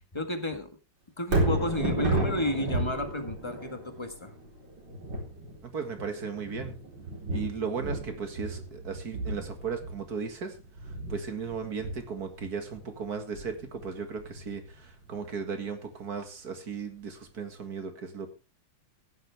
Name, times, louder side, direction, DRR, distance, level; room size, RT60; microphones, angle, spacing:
voice 1, 0.1-0.7 1.2-4.3, left 1 dB, 15° left, 7 dB, 1.4 m, -32 dB
Thunder, 1.2-15.4 15.9-16.0, right 2 dB, 75° right, 4.9 m, -34 dB
voice 2, 5.6-6.7 7.3-10.6 10.8-18.3, right 5 dB, 55° right, 6 dB, 2.3 m, -36 dB
15.0 x 10.5 x 3.5 m, 0.30 s
omnidirectional pair, 2.1 m